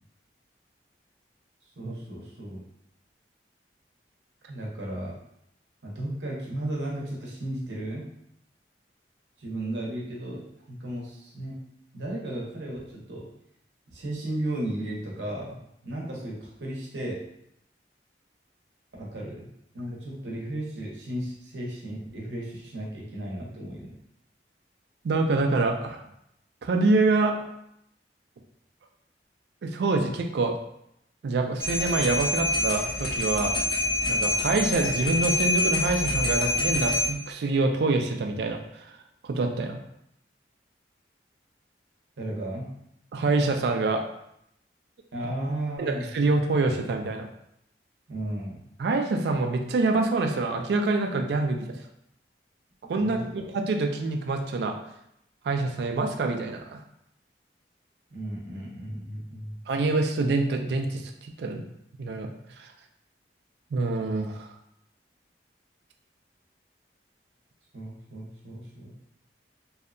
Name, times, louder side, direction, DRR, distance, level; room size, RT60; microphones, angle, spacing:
voice 1, 1.8-2.6 4.5-5.1 5.8-8.1 9.4-11.6 11.9-13.3 13.9-17.2 19.0-19.5 19.7-23.9 42.2-42.7 45.1-46.1 48.1-48.6 52.9-53.5 58.1-59.6 67.7-68.9, right 1 dB, 85° right, -3 dB, 0.7 m, -35 dB
voice 2, 25.0-26.0 26.6-27.3 29.6-30.5 31.2-33.5 34.1-38.8 39.2-39.8 43.1-44.0 45.8-47.3 48.8-51.8 52.9-54.7 55.4-56.8 59.7-61.6 62.0-62.3 62.6-62.7 63.7-64.5, right 3 dB, 65° right, 4 dB, 0.3 m, -26 dB
sound 1, 31.6-37.1, left 2 dB, 25° left, 0.3 m, -26 dB
2.7 x 2.1 x 2.5 m, 0.77 s
head